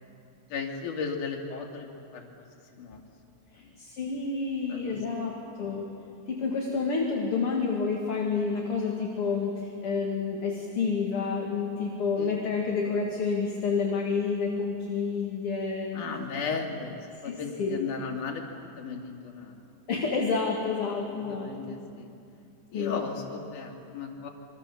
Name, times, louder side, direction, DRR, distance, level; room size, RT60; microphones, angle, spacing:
voice 1, 0.5-2.3 2.7-3.0 3.6-3.7 4.7-5.0 12.2-12.5 15.9-18.4 18.8-19.6 21.0-22.1 22.7-24.3, left 5 dB, 65° left, 1 dB, 3.8 m, -36 dB
voice 2, 3.5-5.9 6.3-16.0 17.2-17.8 19.9-21.8 22.7-23.0, left 5 dB, 45° left, -1 dB, 2.8 m, -29 dB
26.5 x 24.0 x 7.1 m, 2.6 s
omnidirectional pair, 3.9 m